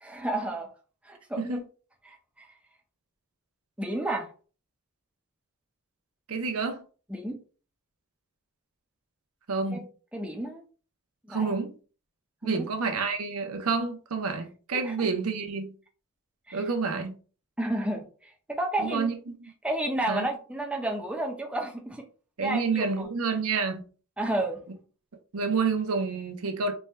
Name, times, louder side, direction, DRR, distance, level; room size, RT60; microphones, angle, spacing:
voice 1, 0.0-0.7 1.0-1.6 2.0-2.5 3.8-4.3 7.1-7.4 9.7-9.8 10.1-10.6 11.2-11.6 12.4-12.6 14.7-15.1 16.5-16.6 17.6-19.1 19.6-22.0 22.4-23.1 24.2-24.6, right 1 dB, 5° right, 0.5 m, -31 dB
voice 2, 6.3-6.8 9.5-9.8 11.3-11.8 12.4-15.7 16.5-17.2 18.8-19.1 19.4-19.5 20.1-20.3 22.4-23.8 25.3-26.7, right 4 dB, 75° right, 0.7 m, -29 dB
4.3 x 2.3 x 3.2 m
head